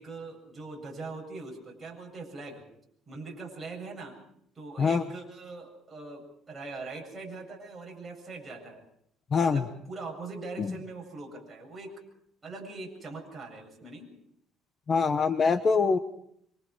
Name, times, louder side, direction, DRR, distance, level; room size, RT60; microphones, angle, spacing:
voice 1, 0.0-2.6 3.1-4.1 4.5-8.8 9.4-11.9 12.4-14.1, right 3 dB, 15° right, -1 dB, 7.9 m, -42 dB
voice 2, 9.3-9.6 10.6-10.7 14.9-16.0, left 5 dB, 30° left, 10 dB, 1.0 m, -24 dB
26.5 x 25.5 x 4.9 m, 0.70 s
cardioid pair, 145°, 0 cm